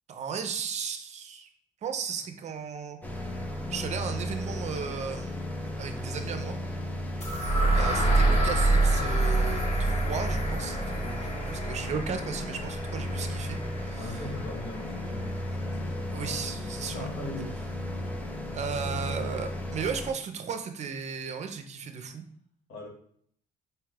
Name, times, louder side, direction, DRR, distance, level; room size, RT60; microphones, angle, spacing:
voice 1, 0.1-1.5 1.8-3.0 3.7-5.4 5.8-6.6 7.3-7.4 7.7-14.2 16.1-17.1 18.5-22.2, right 6 dB, 45° right, 7 dB, 0.5 m, -35 dB
sound 1, 3.0-20.1, left 1 dB, 10° left, 0.6 m, -35 dB
sound 2, 7.2-15.1, right 2 dB, 40° left, 1.0 m, -27 dB
voice 2, 7.4-7.8 14.0-17.7 22.7-22.9, left 1 dB, 75° left, 0 dB, 1.2 m, -41 dB
4.4 x 2.3 x 3.2 m, 0.64 s
cardioid pair, 110°, 17 cm